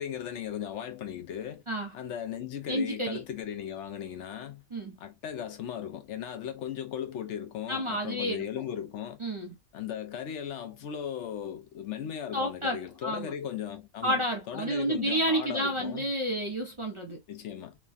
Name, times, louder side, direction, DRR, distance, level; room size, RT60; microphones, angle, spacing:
voice 1, 0.0-1.6 1.9-4.6 5.0-9.2 9.7-14.2 14.5-16.1 17.3-17.8, left 9 dB, 75° left, 0.9 m, -37 dB
voice 2, 2.7-3.2 4.7-4.9 7.7-8.6 9.2-9.5 12.3-13.3 14.0-17.2, equal, 35° right, 0.5 m, -30 dB
3.2 x 2.2 x 2.4 m
omnidirectional pair, 1.3 m